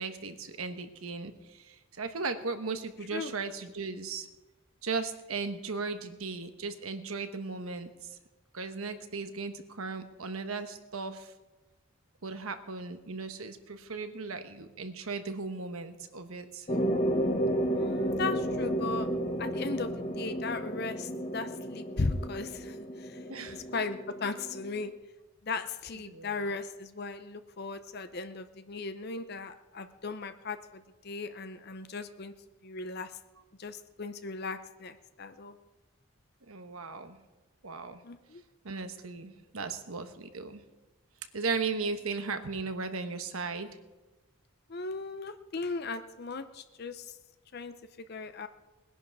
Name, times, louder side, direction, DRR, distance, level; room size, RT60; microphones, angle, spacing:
voice 1, 0.0-4.3 4.8-7.9 8.5-11.3 12.2-16.7 23.3-23.6 26.1-26.5 36.5-37.2 37.6-38.0 38.6-40.6 41.3-43.7, right 4 dB, 85° right, 8 dB, 1.2 m, -36 dB
sound 1, 16.7-24.9, equal, 30° left, 1.3 m, -32 dB
voice 2, 17.7-19.1 19.4-23.2 23.5-24.9 25.4-32.3 32.6-33.1 33.6-35.5 38.0-38.4 44.7-47.2 47.5-48.5, left 3 dB, 50° left, 10 dB, 0.7 m, -37 dB
20.5 x 11.0 x 4.7 m, 1.2 s
head